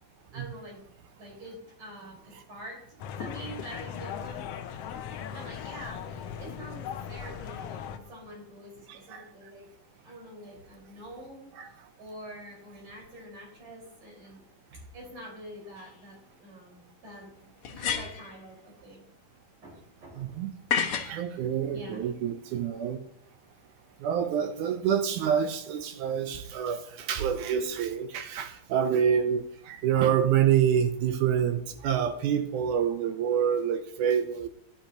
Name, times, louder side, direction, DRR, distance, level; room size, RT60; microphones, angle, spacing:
voice 1, 0.3-0.8 1.2-2.8 3.2-4.4 5.3-9.7 10.0-14.5 14.7-19.0 19.6-20.4 21.7-22.0, equal, 55° right, -3 dB, 6.5 m, -46 dB
sound 1, 3.0-8.0, left 8 dB, 90° left, 1.3 m, -38 dB
voice 2, 8.9-9.3 11.6-11.7 20.2-20.5 21.1-23.0 24.0-34.5, right 8 dB, 75° right, 8 dB, 2.2 m, -27 dB
sound 2, 15.8-15.9 17.6-18.3 20.7-21.2, left 7 dB, 55° left, 1.7 m, -29 dB
16.0 x 10.0 x 3.0 m, 0.71 s
omnidirectional pair, 3.7 m